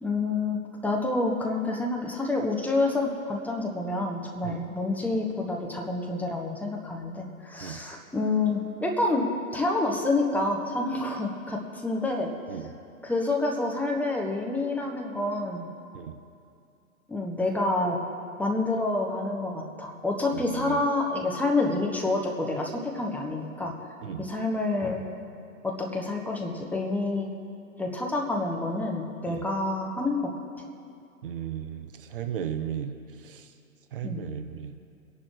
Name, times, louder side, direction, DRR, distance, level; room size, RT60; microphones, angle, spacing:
voice 1, 0.0-9.3 9.5-12.7 13.0-15.7 17.1-18.0 18.4-23.7 24.2-25.1 25.6-27.3 27.8-30.4 34.0-34.2, left 2 dB, 5° left, 0 dB, 0.9 m, -28 dB
voice 2, 20.3-20.8 24.0-24.3 29.3-29.4 31.2-33.5 33.9-34.7, right 9 dB, 40° right, 8 dB, 0.7 m, -35 dB
24.5 x 11.0 x 3.2 m, 2.5 s
figure-of-eight pair, 110°, 43 cm